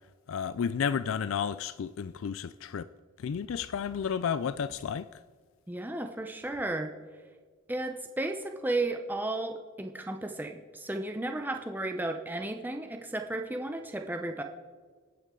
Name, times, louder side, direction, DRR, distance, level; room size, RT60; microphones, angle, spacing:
voice 1, 0.3-2.9 3.2-5.1, left 7 dB, 65° left, 0.4 m, -32 dB
voice 2, 5.7-6.9 7.7-14.4, right 2 dB, 10° right, 0.7 m, -34 dB
26.5 x 8.8 x 3.8 m
head